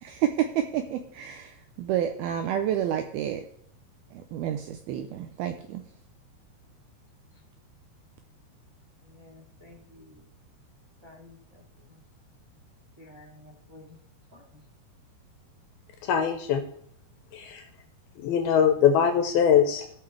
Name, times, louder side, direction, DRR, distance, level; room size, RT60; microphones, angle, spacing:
voice 1, 0.0-3.5 4.1-5.8, right 10 dB, 85° right, 6 dB, 2.2 m, -29 dB
voice 2, 9.0-10.2 11.0-11.6 13.0-14.0 14.3-14.4, left 2 dB, 15° right, -3 dB, 1.1 m, -51 dB
voice 3, 16.1-16.6 17.3-17.6 18.2-19.9, left 8 dB, 75° left, 6 dB, 2.4 m, -22 dB
17.0 x 5.8 x 3.2 m, 0.67 s
omnidirectional pair, 5.0 m